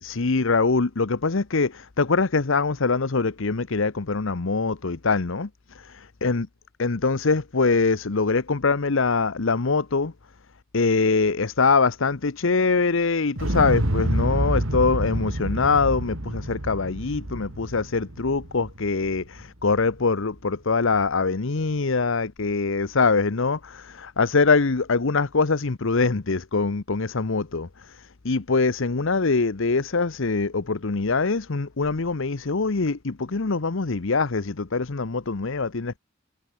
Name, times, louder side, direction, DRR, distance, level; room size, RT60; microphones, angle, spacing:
voice 1, 0.0-5.5 5.9-6.5 6.8-10.1 10.7-27.7 28.2-36.0, left 4 dB, 70° left, 0.9 m, -23 dB
Explosion, 13.4-19.4 19.7-19.8, right 1 dB, 75° right, 3.0 m, -28 dB
head